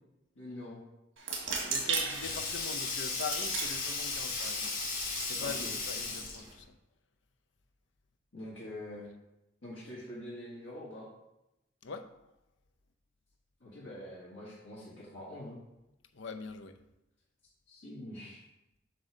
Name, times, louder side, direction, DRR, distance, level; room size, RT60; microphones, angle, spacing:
voice 1, 0.4-0.8 5.4-5.7 8.3-9.1 9.6-11.1 13.6-15.6 17.7-18.4, left 1 dB, 85° left, 1.8 m, -44 dB
sound 1, 1.2-6.5, right 5 dB, 85° right, 1.6 m, -38 dB
Sink (filling or washing), 1.4-6.6, left 4 dB, 50° left, 1.3 m, -36 dB
voice 2, 1.6-4.8 5.2-6.8 11.8-12.1 16.1-16.8, left 5 dB, 70° left, 0.6 m, -42 dB
7.7 x 3.2 x 6.2 m
head